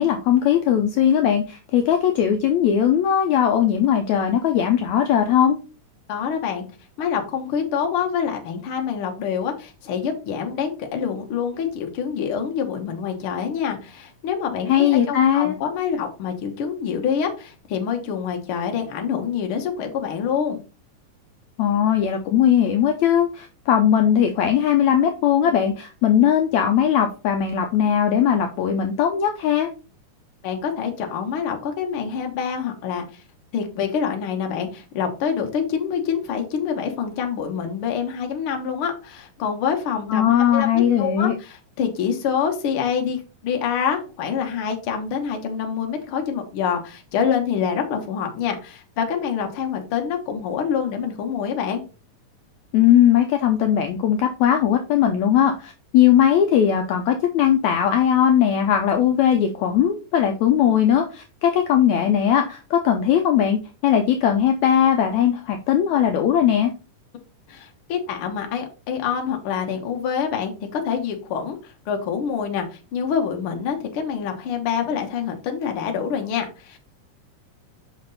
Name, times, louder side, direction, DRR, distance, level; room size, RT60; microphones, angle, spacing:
voice 1, 0.0-5.6 14.7-15.6 21.6-29.7 40.1-41.3 52.7-66.7, left 9 dB, 75° left, 5 dB, 1.8 m, -19 dB
voice 2, 6.1-6.6 7.0-20.6 30.4-33.0 33.5-51.8 67.5-76.8, left 7 dB, 55° left, 3 dB, 1.6 m, -26 dB
5.9 x 5.2 x 4.0 m, 0.33 s
omnidirectional pair, 3.7 m